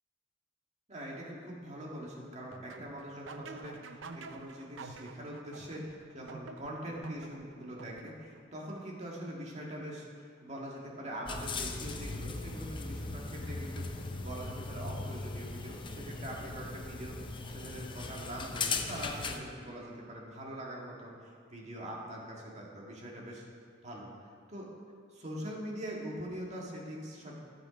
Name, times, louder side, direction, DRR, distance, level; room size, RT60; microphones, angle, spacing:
voice 1, 0.9-23.4 23.8-24.1 24.5-24.7 25.1-27.4, equal, 40° right, -2 dB, 1.8 m, -43 dB
sound 1, 2.5-8.4, right 4 dB, 85° right, 0.6 m, -48 dB
sound 2, 11.3-19.4, left 3 dB, 25° left, 0.6 m, -38 dB
11.5 x 7.6 x 5.0 m, 2.1 s
head